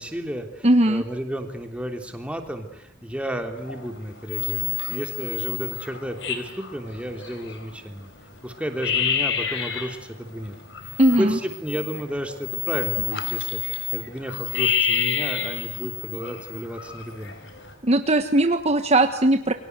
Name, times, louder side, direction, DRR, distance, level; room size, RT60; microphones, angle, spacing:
voice 1, 0.0-8.1 8.4-10.6 10.8-17.3, equal, 5° right, 4 dB, 3.3 m, -32 dB
voice 2, 0.6-1.0 11.0-11.4 17.8-19.5, right 1 dB, 35° right, 7 dB, 1.4 m, -19 dB
sound 1, 3.6-4.0 4.2-7.8 8.2-8.3 8.6-10.0 10.4-17.7, left 8 dB, 70° left, 4.3 m, -29 dB
29.5 x 24.0 x 8.1 m, 0.76 s
head